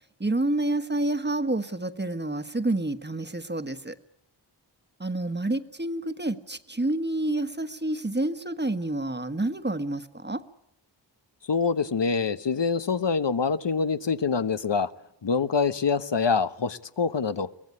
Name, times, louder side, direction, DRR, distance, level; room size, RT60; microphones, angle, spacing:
voice 1, 0.2-4.0 5.0-10.4, right 2 dB, 25° right, 10 dB, 1.5 m, -28 dB
voice 2, 11.5-14.9 15.2-17.5, left 5 dB, 75° left, 11 dB, 1.1 m, -25 dB
23.5 x 18.0 x 9.8 m, 0.85 s
wide cardioid pair, 45°, 43 cm